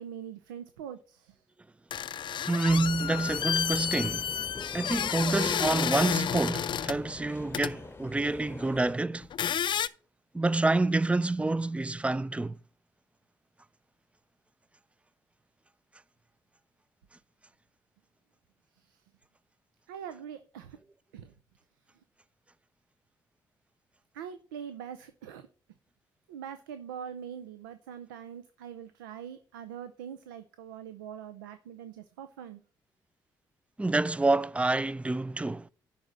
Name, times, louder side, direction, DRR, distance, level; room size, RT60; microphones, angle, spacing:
voice 1, 0.0-1.4 18.8-19.0 19.9-20.8 21.1-21.3 24.1-25.5 26.3-32.6, right 8 dB, 85° right, 0.5 m, -43 dB
sound 1, 1.9-7.0 7.5-7.7 9.2-9.9, left 9 dB, 50° left, 0.5 m, -31 dB
voice 2, 2.5-4.3 4.7-9.3 10.3-12.6 33.8-35.7, right 2 dB, 10° right, 0.4 m, -28 dB
sound 2, 2.7-8.9, left 3 dB, 20° left, 0.8 m, -44 dB
10.5 x 4.2 x 6.1 m
hypercardioid pair, 45°, 10 cm